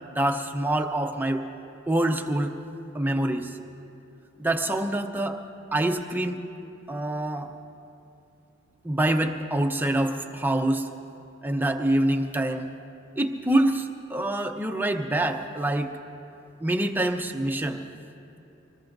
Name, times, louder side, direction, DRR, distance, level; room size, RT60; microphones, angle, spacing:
voice 1, 0.1-1.4 1.9-2.5 2.9-3.5 4.4-5.4 5.7-6.4 6.9-7.5 8.8-10.9 11.4-12.7 13.2-15.9 16.6-17.8, right 1 dB, 10° right, 4 dB, 0.7 m, -25 dB
25.0 x 20.0 x 2.6 m, 2.7 s
head